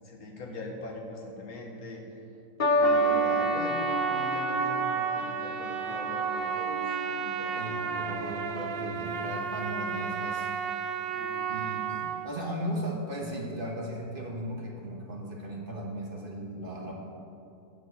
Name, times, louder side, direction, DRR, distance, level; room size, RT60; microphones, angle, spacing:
voice 1, 0.0-2.0 2.8-7.6 11.1-11.5, left 2 dB, 80° left, 0 dB, 1.8 m, -42 dB
sound 1, 2.6-9.1 10.0-10.4, equal, 40° left, 1.0 m, -31 dB
Trumpet, 2.8-12.3, right 6 dB, 55° right, 0.7 m, -32 dB
voice 2, 7.5-10.5 11.5-16.9, right 1 dB, 40° right, -1 dB, 1.3 m, -36 dB
12.0 x 4.5 x 8.0 m, 2.7 s
omnidirectional pair, 1.5 m